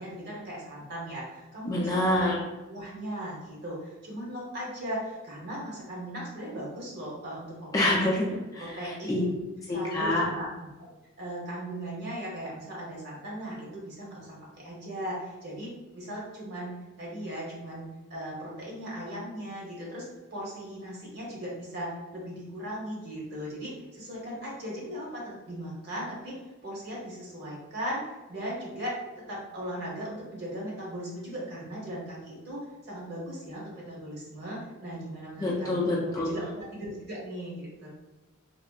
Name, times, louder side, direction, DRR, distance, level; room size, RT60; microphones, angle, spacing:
voice 1, 0.0-2.3 2.7-8.0 8.6-9.4 9.7-10.5 10.8-10.9 11.2-20.0 20.3-26.4 26.6-28.0 28.3-29.0 29.3-37.9, equal, 50° right, -4 dB, 0.9 m, -38 dB
voice 2, 1.7-2.4 7.7-9.2 9.7-10.3 35.4-36.3, left 1 dB, 15° left, -5 dB, 0.3 m, -27 dB
3.4 x 2.0 x 2.3 m, 1.1 s
head